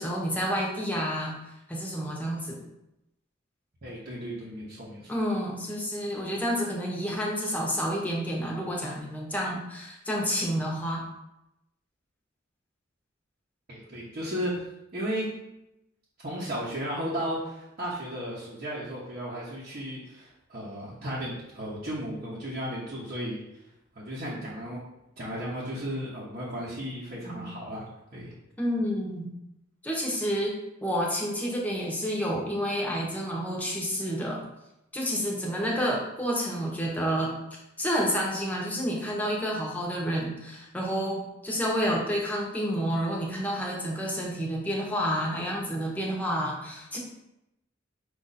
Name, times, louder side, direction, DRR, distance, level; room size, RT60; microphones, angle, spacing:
voice 1, 0.0-1.3 1.7-2.6 5.1-11.0 26.8-26.9 27.2-27.5 28.6-29.3 29.8-30.5 30.8-34.4 34.9-37.4 37.8-47.0, equal, 10° left, -3 dB, 0.9 m, -29 dB
voice 2, 3.8-5.1 13.7-14.6 14.9-15.3 16.2-23.6 23.9-24.8 25.2-27.8 28.1-28.3, equal, 45° right, -7 dB, 0.9 m, -34 dB
5.0 x 2.5 x 4.1 m, 0.88 s
head